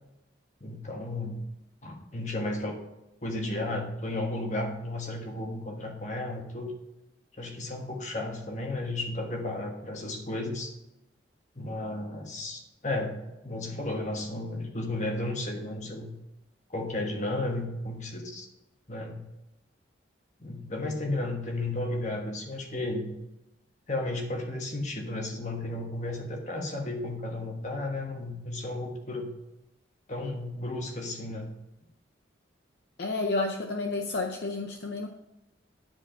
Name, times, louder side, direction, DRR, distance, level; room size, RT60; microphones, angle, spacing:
voice 1, 0.6-1.4 1.8-2.8 3.2-6.7 7.4-10.7 11.6-13.2 13.4-16.1 16.7-18.5 18.9-19.2 20.4-23.1 23.9-29.3 30.1-31.5, left 2 dB, 40° left, 2 dB, 1.4 m, -33 dB
voice 2, 33.0-35.1, left 3 dB, 60° left, 4 dB, 0.6 m, -30 dB
10.5 x 4.8 x 5.7 m, 0.93 s
head